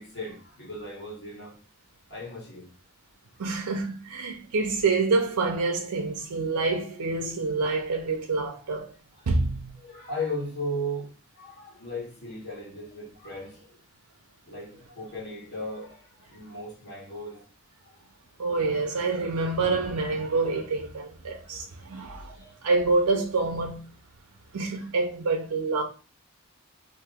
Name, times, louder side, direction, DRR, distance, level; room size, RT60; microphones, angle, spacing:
voice 1, 0.0-1.6 2.1-2.7 3.4-3.5 9.1-9.3 9.8-11.1 11.3-13.8 14.5-17.4 17.8-17.9 21.5-21.7 21.9-22.6 24.7-24.9, left 1 dB, 50° left, 1.4 m, -37 dB
voice 2, 3.4-8.9 9.3-9.7 18.4-22.4 22.6-23.8 24.5-25.8, right 3 dB, 90° right, 0.5 m, -27 dB
2.9 x 2.6 x 3.4 m
head